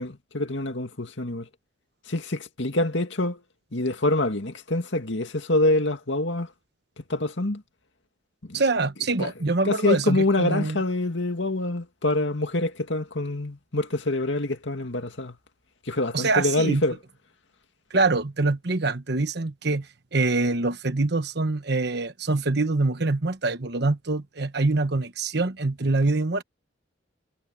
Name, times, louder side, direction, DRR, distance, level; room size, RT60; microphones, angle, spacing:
voice 1, 0.0-1.5 2.1-3.4 3.7-6.5 7.0-7.6 8.5-8.6 9.2-9.3 9.6-15.4 15.9-17.0, left 2 dB, 70° left, 2.3 m, -26 dB
voice 2, 8.5-10.8 16.1-16.8 17.9-19.9 20.1-26.4, right 3 dB, 60° right, 1.2 m, -24 dB
head